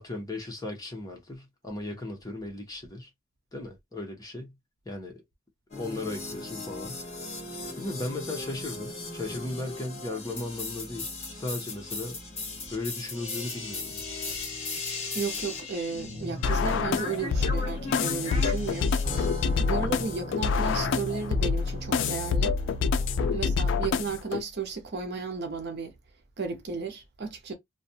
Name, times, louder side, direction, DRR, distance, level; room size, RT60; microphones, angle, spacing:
voice 1, 0.0-3.1 3.5-4.6 4.8-5.2 5.7-7.0 7.5-12.2 12.7-14.1 19.7-20.1 23.3-23.7, left 2 dB, 20° left, 0.8 m, -37 dB
sound 1, 5.7-23.7, left 2 dB, 35° left, 1.3 m, -37 dB
voice 2, 15.1-18.9 19.6-22.5 23.3-25.9 26.4-27.5, right 4 dB, 60° right, 0.7 m, -34 dB
sound 2, 16.4-24.4, left 5 dB, 65° left, 0.3 m, -27 dB
2.4 x 2.2 x 2.7 m
head